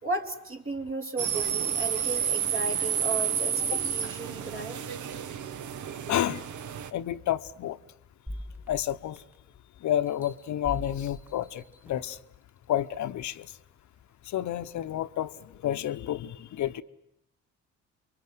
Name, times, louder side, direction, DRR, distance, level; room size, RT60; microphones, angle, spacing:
voice 1, 0.0-4.8, right 3 dB, 45° right, 3.2 m, -35 dB
sound 1, 1.2-6.9, right 8 dB, 75° right, 1.2 m, -30 dB
voice 2, 6.1-6.4 6.9-7.8 8.7-9.2 9.8-12.2 12.7-13.5 14.3-15.3 15.6-16.8, left 12 dB, 70° left, 1.0 m, -30 dB
sound 2, 8.3-9.6 10.1-12.2 12.8-12.9, left 1 dB, 5° right, 1.5 m, -42 dB
27.5 x 23.5 x 7.9 m
cardioid pair, 90°, 30 cm